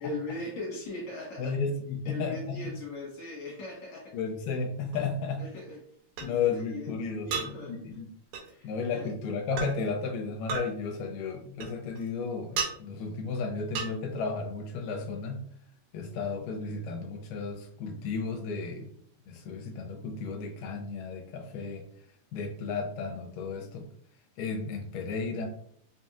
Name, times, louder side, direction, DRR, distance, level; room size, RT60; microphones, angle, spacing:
voice 1, 0.0-1.6 2.1-4.2 5.4-5.8 6.2-7.7 8.4-9.1, left 2 dB, 60° left, -5 dB, 2.2 m, -39 dB
voice 2, 1.4-2.7 4.1-5.4 6.2-8.1 8.6-15.4 15.9-18.9 19.3-21.8 22.3-23.9 24.4-25.5, left 4 dB, 80° left, 3 dB, 2.1 m, -33 dB
sound 1, 4.9-5.0 6.2-6.3 7.3-7.5 8.3-8.5 9.6-9.7 10.5-10.7 11.6-12.1 12.6-12.7 13.7-13.9, right 5 dB, 80° right, 2.3 m, -32 dB
5.5 x 2.7 x 2.3 m, 0.64 s
omnidirectional pair, 4.0 m